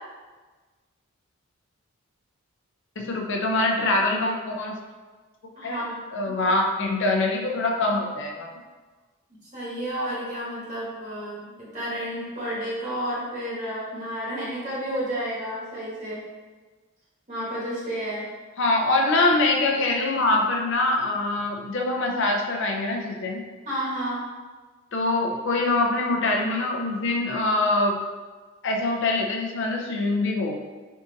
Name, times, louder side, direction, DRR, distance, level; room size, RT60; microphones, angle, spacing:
voice 1, 3.0-4.8 5.6-5.8 6.1-8.5 18.6-23.4 24.9-28.0 28.6-30.6, left 2 dB, 60° left, 1 dB, 0.6 m, -24 dB
voice 2, 5.6-6.0 6.2-6.3 9.3-16.2 17.3-18.3 23.6-24.2, equal, 35° right, -7 dB, 1.2 m, -31 dB
3.6 x 2.6 x 3.9 m, 1.3 s
head